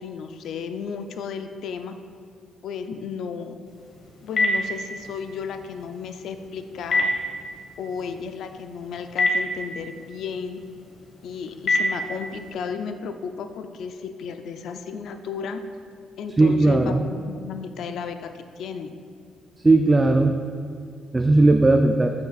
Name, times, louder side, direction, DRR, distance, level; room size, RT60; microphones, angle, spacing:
voice 1, 0.0-1.9 2.6-3.6 4.2-7.1 7.8-10.6 11.2-15.6 16.2-18.3 18.6-18.9, left 6 dB, 75° left, 8 dB, 0.4 m, -33 dB
Telephone, 3.7-12.5, left 1 dB, 55° left, 1.2 m, -29 dB
voice 2, 16.4-17.0 19.6-20.3 21.1-22.1, right 2 dB, 20° right, 5 dB, 0.3 m, -17 dB
8.8 x 5.8 x 2.4 m, 2.2 s
cardioid pair, 90°, 0 cm